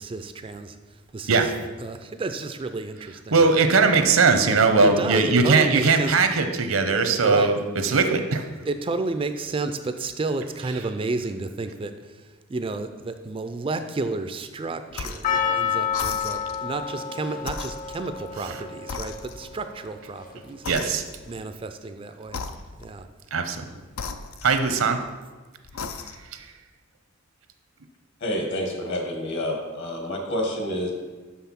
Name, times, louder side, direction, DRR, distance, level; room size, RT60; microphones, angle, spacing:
voice 1, 0.0-1.5 1.8-3.4 4.8-6.2 7.2-7.5 8.7-20.9 21.3-22.4 22.8-23.1, right 3 dB, 25° right, 9 dB, 0.3 m, -31 dB
voice 2, 3.3-8.4 20.7-21.0 23.3-23.6 24.4-25.0 26.3-26.5, right 4 dB, 80° right, 7 dB, 0.8 m, -20 dB
sound 1, 14.9-15.4 15.9-16.7 17.4-18.5 18.9-19.7 20.6-21.4 22.3-23.0 23.9-25.0 25.6-26.4, left 5 dB, 90° left, 0.5 m, -36 dB
Percussion, 15.2-19.6 20.2-20.3, left 7 dB, 40° left, 0.6 m, -29 dB
voice 3, 28.2-30.9, left 1 dB, 60° left, 2 dB, 1.6 m, -28 dB
6.4 x 5.6 x 5.8 m, 1.3 s
head